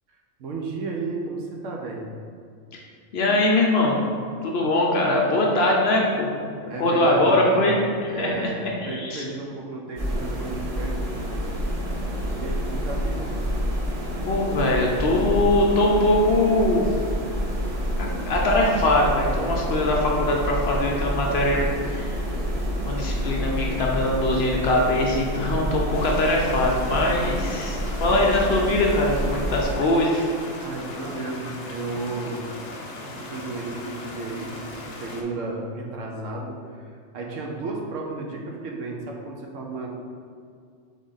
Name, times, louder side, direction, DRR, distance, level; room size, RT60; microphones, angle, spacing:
voice 1, 0.4-2.0 5.9-6.0 6.3-11.5 12.4-13.3 27.9-28.2 30.6-32.4 33.0-39.9, right 3 dB, 75° right, 0 dB, 1.0 m, -33 dB
voice 2, 3.1-4.0 4.4-6.3 6.8-7.8 8.2-8.3 8.6-9.2 14.2-16.9 18.0-22.1 22.9-30.3, left 1 dB, 60° left, -1 dB, 0.7 m, -22 dB
sound 1, 10.0-29.7, equal, 35° right, 0.6 m, -28 dB
sound 2, 25.9-35.2, left 2 dB, 80° left, 0.3 m, -38 dB
3.6 x 3.6 x 3.9 m, 2.2 s
omnidirectional pair, 1.4 m